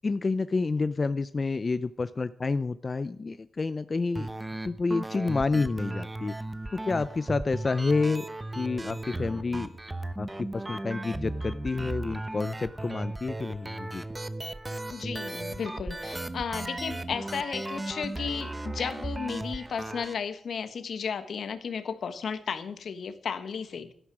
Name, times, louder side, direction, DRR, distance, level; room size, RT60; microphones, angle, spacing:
voice 1, 0.0-4.3 4.6-6.3 6.7-8.3 8.6-9.7 10.2-14.0, left 3 dB, 35° left, 13 dB, 0.5 m, -29 dB
sound 1, 4.2-20.1, right 2 dB, 15° right, 1.0 m, -36 dB
voice 2, 14.9-23.9, left 6 dB, 70° left, 10 dB, 1.5 m, -34 dB
17.5 x 12.5 x 4.8 m, 0.63 s
wide cardioid pair, 105°, 0 cm